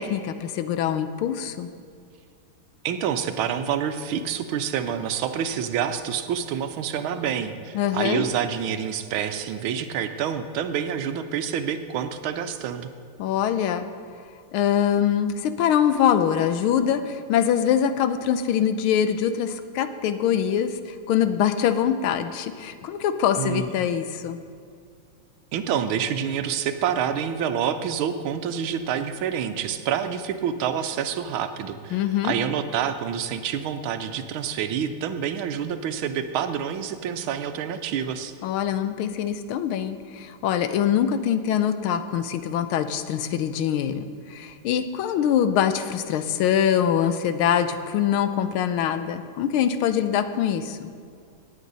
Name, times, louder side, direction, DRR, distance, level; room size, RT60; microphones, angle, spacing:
voice 1, 0.0-1.7 7.7-8.3 13.2-13.9 14.5-20.8 21.1-24.4 31.9-32.3 38.4-50.9, left 9 dB, 80° left, 11 dB, 1.5 m, -23 dB
voice 2, 2.8-12.9 23.4-23.7 25.5-38.3, right 8 dB, 80° right, 9 dB, 1.4 m, -27 dB
17.5 x 8.2 x 4.0 m, 2.3 s
omnidirectional pair, 2.4 m